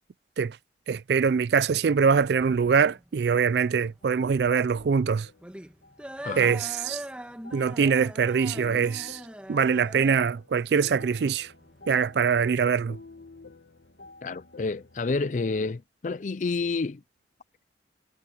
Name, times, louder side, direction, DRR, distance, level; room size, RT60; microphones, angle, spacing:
voice 1, 0.9-5.3 6.4-7.0 7.5-9.2 9.5-11.5 11.9-13.0, right 6 dB, 65° right, 0.4 m, -23 dB
sound 1, 2.2-12.2, equal, 5° right, 1.7 m, -43 dB
sound 2, 4.0-15.7, left 3 dB, 80° left, 2.2 m, -50 dB
voice 2, 6.2-6.6 14.2-17.0, left 3 dB, 45° left, 0.4 m, -29 dB
head